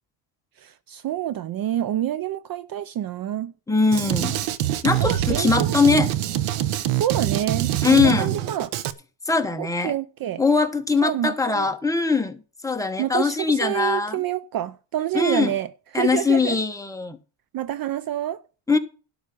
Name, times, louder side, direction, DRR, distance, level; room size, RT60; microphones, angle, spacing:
voice 1, 0.6-3.5 5.0-6.1 6.9-8.7 9.6-10.4 11.0-11.7 13.0-16.6 17.5-18.4, right 12 dB, 45° right, 0.6 m, -27 dB
voice 2, 3.7-4.4 4.8-6.1 7.8-8.3 9.3-9.9 10.4-12.4 12.6-14.2 15.1-15.5 15.9-17.2 18.7-18.8, left 4 dB, 5° left, 1.2 m, -21 dB
Drum kit, 3.9-8.9, right 12 dB, 85° right, 1.1 m, -24 dB
12.0 x 4.9 x 8.3 m
cardioid pair, 130°, 49 cm